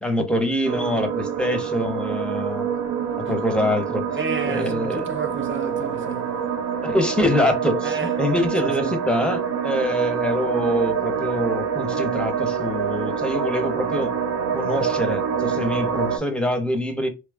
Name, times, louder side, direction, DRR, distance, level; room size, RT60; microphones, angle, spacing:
voice 1, 0.0-2.7 3.2-4.1 4.4-5.1 6.8-14.1 14.5-17.1, left 1 dB, 5° left, 0.8 m, -24 dB
sound 1, 0.6-16.2, right 7 dB, 65° right, 0.9 m, -26 dB
voice 2, 4.1-6.4 7.8-8.2 8.6-8.9, right 5 dB, 40° right, 0.5 m, -31 dB
3.1 x 2.3 x 3.3 m
cardioid pair, 90°, 30 cm